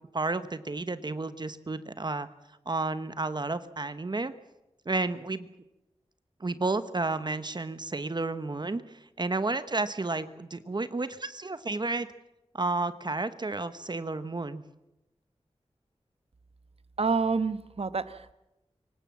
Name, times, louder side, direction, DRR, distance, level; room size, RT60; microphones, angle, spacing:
voice 1, 0.1-2.3 2.7-4.3 4.9-5.5 6.4-12.1 12.5-14.6, right 3 dB, 40° right, 12 dB, 1.0 m, -31 dB
voice 2, 17.0-18.3, right 4 dB, 60° right, 12 dB, 1.2 m, -28 dB
25.0 x 17.5 x 7.5 m, 0.92 s
wide cardioid pair, 90°, 11 cm